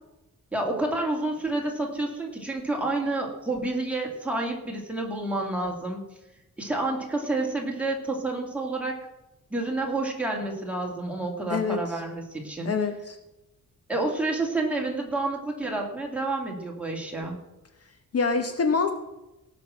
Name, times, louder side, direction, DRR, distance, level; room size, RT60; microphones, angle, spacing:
voice 1, 0.5-6.0 6.6-8.9 9.5-12.7 13.9-17.4, right 2 dB, 5° right, -1 dB, 2.4 m, -29 dB
voice 2, 11.5-12.0 12.6-13.2 18.1-18.9, left 4 dB, 45° left, 7 dB, 0.9 m, -25 dB
18.0 x 6.0 x 6.0 m, 0.98 s
wide cardioid pair, 150°, 33 cm